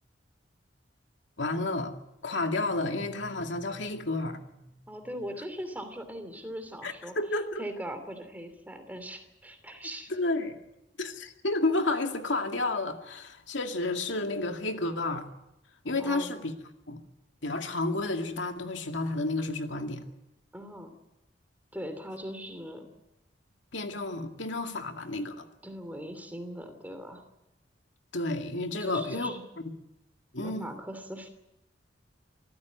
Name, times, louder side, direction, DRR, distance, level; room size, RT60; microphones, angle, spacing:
voice 1, 1.4-2.0 2.2-4.4 6.8-7.7 10.1-10.6 11.0-15.3 15.8-16.5 16.9-17.0 17.4-20.0 23.7-25.4 28.1-29.3 30.3-30.6, left 2 dB, 80° left, 2.3 m, -31 dB
sound 1, 2.5-6.2, equal, 60° right, 4.1 m, -53 dB
voice 2, 4.9-7.1 7.6-10.1 16.0-16.3 20.5-20.9 21.7-22.8 25.6-27.2 28.8-29.4 30.4-31.3, equal, 10° right, 2.9 m, -40 dB
25.5 x 15.0 x 9.4 m
head